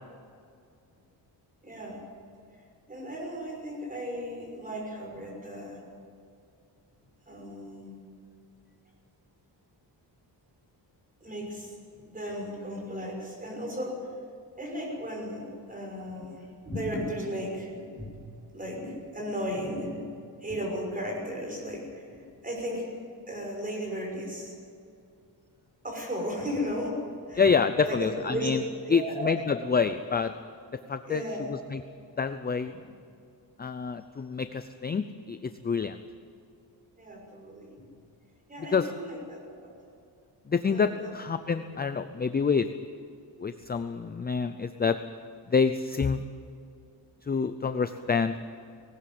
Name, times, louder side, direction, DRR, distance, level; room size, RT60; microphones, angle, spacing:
voice 1, 1.6-2.0 2.9-5.8 7.3-8.0 11.2-11.8 12.1-14.0 14.6-20.1 20.4-22.9 23.3-24.5 25.8-27.4 27.8-28.5 28.8-29.3 31.1-31.5 37.0-37.7 38.5-39.7 40.7-41.1, equal, 20° right, 0 dB, 5.8 m, -35 dB
voice 2, 27.4-28.6 28.9-30.3 30.7-31.2 31.5-31.8 32.2-32.7 33.6-36.0 38.7-38.9 40.5-42.7 43.4-45.0 45.5-46.2 47.2-48.3, left 5 dB, 20° left, 10 dB, 0.5 m, -27 dB
19.0 x 19.0 x 7.8 m, 2.4 s
wide cardioid pair, 160°, 43 cm